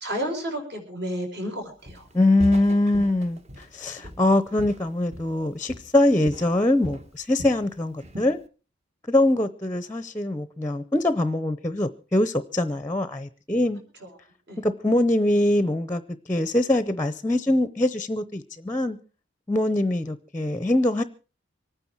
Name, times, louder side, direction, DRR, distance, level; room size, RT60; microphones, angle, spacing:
voice 1, 0.0-2.0 14.5-14.6, equal, 55° right, 4.5 m, -31 dB
Walk footsteps, 1.9-2.1 2.4-5.4 5.7-6.0 6.3-7.7 8.0-8.4, equal, 35° right, 1.1 m, -39 dB
voice 2, 2.1-8.4 9.1-13.8 14.6-16.0 16.3-19.0 19.5-21.0, left 1 dB, 15° left, 0.7 m, -23 dB
25.0 x 9.7 x 4.6 m
head